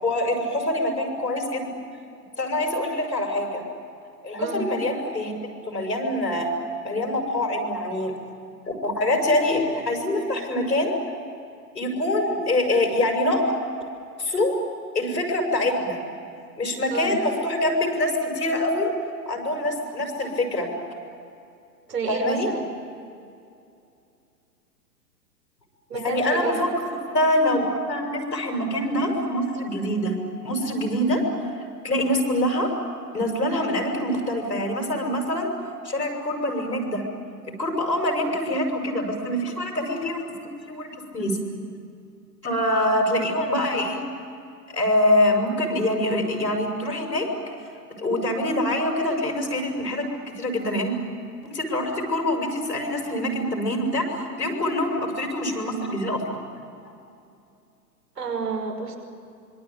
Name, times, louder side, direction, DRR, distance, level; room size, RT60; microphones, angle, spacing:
voice 1, 0.0-1.7 2.4-3.6 4.2-5.3 5.6-6.5 6.8-8.1 8.7-11.0 11.7-13.4 14.2-14.5 14.9-16.0 16.6-18.9 19.3-20.7 22.1-22.5 25.9-30.1 30.4-31.2 31.8-32.7 33.1-35.5 35.8-37.0 37.6-41.4 42.4-44.0 44.7-47.3 48.0-50.1 50.4-50.9 51.4-56.4, left 1 dB, 80° left, 2 dB, 6.5 m, -25 dB
voice 2, 21.9-22.6 25.9-26.6 58.2-59.0, right 5 dB, 70° right, 2 dB, 5.7 m, -29 dB
26.0 x 23.5 x 8.9 m, 2.5 s
figure-of-eight pair, 115°, 50 cm